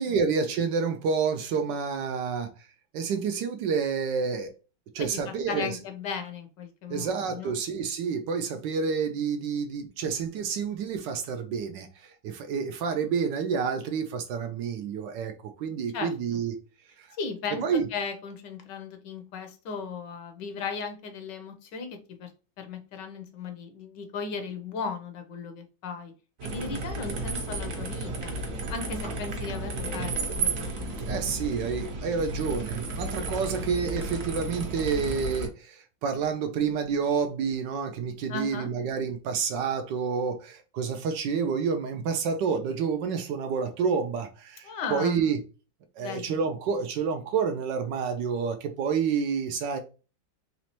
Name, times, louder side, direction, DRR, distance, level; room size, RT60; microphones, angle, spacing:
voice 1, 0.0-2.5 2.9-4.5 4.9-5.8 6.9-16.5 17.0-17.1 17.6-17.9 31.1-45.4 46.0-49.8, right 6 dB, 75° right, 1.2 m, -29 dB
voice 2, 5.0-7.6 15.9-16.1 17.2-22.3 22.6-26.1 26.4-28.3 28.7-31.2 38.3-38.7 44.6-45.2 46.0-46.4, left 5 dB, 70° left, 1.3 m, -36 dB
sound 1, 26.4-35.5, right 2 dB, 50° right, 1.2 m, -33 dB
4.2 x 3.0 x 2.9 m
omnidirectional pair, 2.1 m